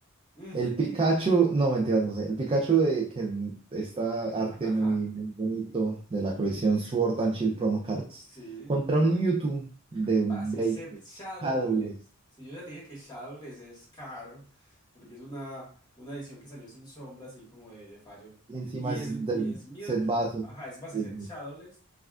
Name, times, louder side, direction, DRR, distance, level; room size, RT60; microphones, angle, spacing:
voice 1, 0.5-8.2 8.7-9.6 9.9-10.8 11.4-11.9 18.5-19.6 19.9-20.5 20.9-21.1, right 3 dB, 25° right, -1 dB, 0.4 m, -27 dB
voice 2, 4.6-5.0 6.4-6.6 8.2-8.8 10.1-11.9 12.4-15.7 16.0-18.3 18.8-20.1 20.4-21.8, right 1 dB, 20° left, -5 dB, 1.6 m, -43 dB
5.6 x 2.4 x 2.3 m, 0.43 s
head